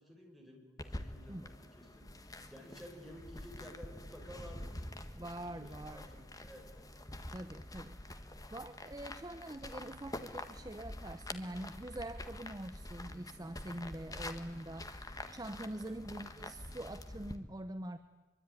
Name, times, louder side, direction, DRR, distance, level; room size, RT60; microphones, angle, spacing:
voice 1, 0.0-4.9 5.3-6.9 13.7-14.8 15.6-16.0, equal, ahead, 0 dB, 5.8 m, -54 dB
sound 1, 0.8-17.4, left 1 dB, 20° left, 1.5 m, -47 dB
voice 2, 5.2-6.1 7.3-18.0, right 1 dB, 20° right, 10 dB, 0.8 m, -45 dB
24.0 x 24.0 x 9.7 m, 1.2 s
head